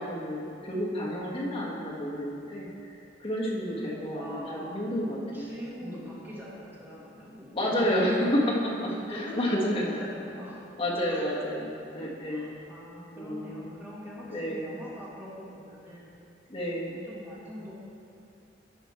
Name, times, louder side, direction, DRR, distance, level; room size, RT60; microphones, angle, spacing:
voice 1, 0.0-2.7 3.2-5.5 5.8-6.0 7.5-10.0 10.8-12.5 13.1-13.8 14.3-14.7 16.5-17.0, equal, 30° left, -5 dB, 1.5 m, -30 dB
voice 2, 3.8-4.8 5.3-8.4 8.9-10.6 11.0-11.3 12.3-16.1 17.1-17.7, left 1 dB, 10° right, -7 dB, 1.8 m, -43 dB
11.0 x 5.5 x 4.3 m, 2.5 s
head